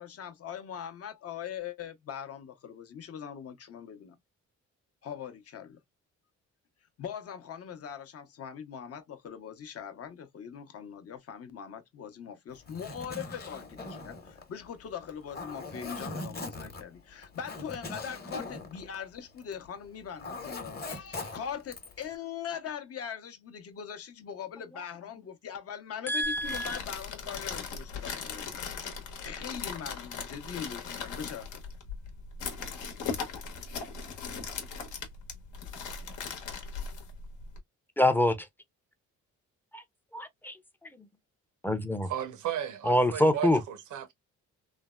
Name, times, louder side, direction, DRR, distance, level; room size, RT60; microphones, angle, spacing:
voice 1, 0.0-4.2 5.0-5.8 7.0-28.6 29.2-31.6, left 8 dB, 50° left, 0.7 m, -41 dB
Zipper (clothing), 12.5-19.7 19.9-22.1, left 2 dB, 30° left, 1.0 m, -41 dB
voice 2, 26.1-26.8 38.0-38.4 39.7-39.8 40.1-40.5 41.6-42.1 42.9-43.6, left 1 dB, 5° left, 0.5 m, -25 dB
sound 1, 26.2-37.6, left 5 dB, 75° left, 1.0 m, -39 dB
voice 3, 42.1-44.1, right 10 dB, 75° right, 0.7 m, -35 dB
3.2 x 2.0 x 2.2 m
cardioid pair, 90°, 30 cm